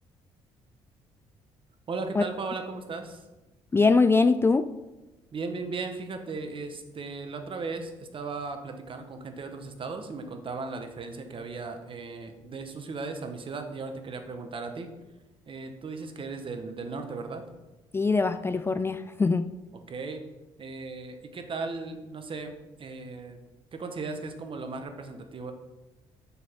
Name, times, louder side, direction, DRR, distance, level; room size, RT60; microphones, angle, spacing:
voice 1, 1.9-3.2 5.3-14.9 15.5-17.4 19.9-20.2 20.6-23.4 23.7-25.5, right 4 dB, 45° right, 6 dB, 1.0 m, -37 dB
voice 2, 3.7-4.6 17.9-19.5, left 4 dB, 20° left, 10 dB, 0.3 m, -22 dB
6.1 x 5.4 x 4.4 m, 1.1 s
supercardioid pair, 65°, 13 cm